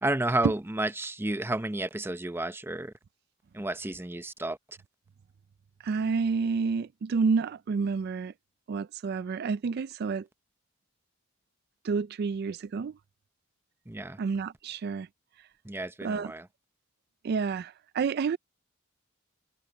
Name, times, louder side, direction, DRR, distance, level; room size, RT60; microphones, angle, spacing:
voice 1, 0.0-2.9 3.5-4.8 13.9-14.2 15.6-16.5, right 2 dB, 10° right, 0.7 m, -31 dB
voice 2, 5.8-8.3 8.7-10.3 11.8-12.9 14.2-15.1 16.0-16.3 17.2-18.4, right 5 dB, 55° right, 0.4 m, -29 dB
head